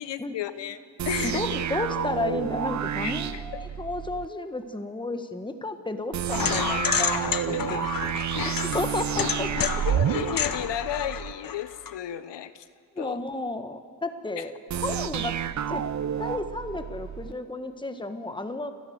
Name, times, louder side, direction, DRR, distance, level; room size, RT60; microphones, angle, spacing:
voice 1, 0.0-1.4 3.0-3.6 7.1-7.3 7.5-7.9 8.4-8.6 9.8-12.7 13.0-13.2 14.4-14.5 14.9-15.0, left 11 dB, 65° left, 14 dB, 1.0 m, -34 dB
sound 1, 1.0-4.3 6.1-11.3 14.7-17.3, right 9 dB, 40° right, 0.6 m, -30 dB
voice 2, 1.2-7.9 8.4-9.5 12.9-14.6 14.8-15.3 15.7-15.8 16.2-18.7, left 2 dB, 10° left, 8 dB, 1.5 m, -32 dB
sound 2, 6.3-11.9, left 7 dB, 45° left, 1.2 m, -30 dB
29.0 x 11.5 x 8.0 m, 2.1 s
supercardioid pair, 50°, 45 cm